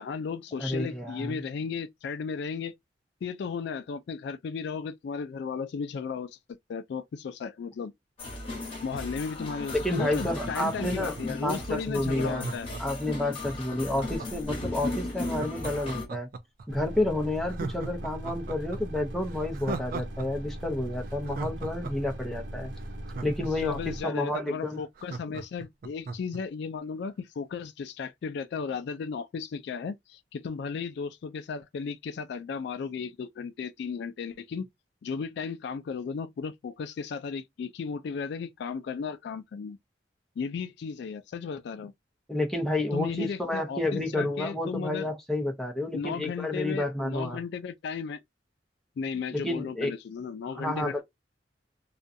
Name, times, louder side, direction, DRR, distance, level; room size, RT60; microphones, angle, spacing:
voice 1, 0.0-2.7 3.2-6.4 6.7-7.9 8.8-12.7 13.9-14.1 23.4-34.7 35.0-39.8 40.4-41.9 42.9-45.1 45.9-48.2 49.0-51.0, left 5 dB, 65° left, 0.3 m, -35 dB
voice 2, 0.6-1.4 9.7-12.5 12.8-16.3 16.7-22.7 23.2-24.8 42.3-47.4 49.3-49.9 50.5-51.0, left 1 dB, ahead, 0.6 m, -30 dB
sound 1, 8.2-16.1, left 2 dB, 30° left, 1.1 m, -36 dB
Laughter, 9.8-11.5 12.3-14.5 15.3-16.7 17.0-17.1 17.5-20.3 20.5-20.6 21.0-23.9 24.3-24.4 24.7-26.4 26.8-26.9, right 4 dB, 50° right, 0.4 m, -39 dB
sound 2, 16.7-24.0, right 1 dB, 75° right, 0.8 m, -39 dB
2.5 x 2.2 x 2.6 m
head